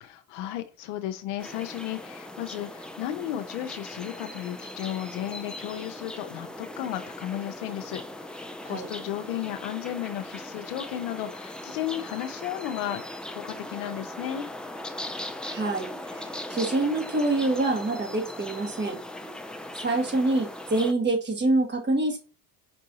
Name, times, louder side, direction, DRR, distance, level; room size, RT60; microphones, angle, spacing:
voice 1, 0.1-13.0 13.3-14.5, left 12 dB, 90° left, 7 dB, 0.6 m, -34 dB
sound 1, 1.4-20.9, left 1 dB, 5° left, 0.3 m, -39 dB
voice 2, 15.4-19.0 19.8-22.2, right 2 dB, 30° right, 2 dB, 1.6 m, -26 dB
5.4 x 2.6 x 2.8 m, 0.36 s
supercardioid pair, 90°, 37 cm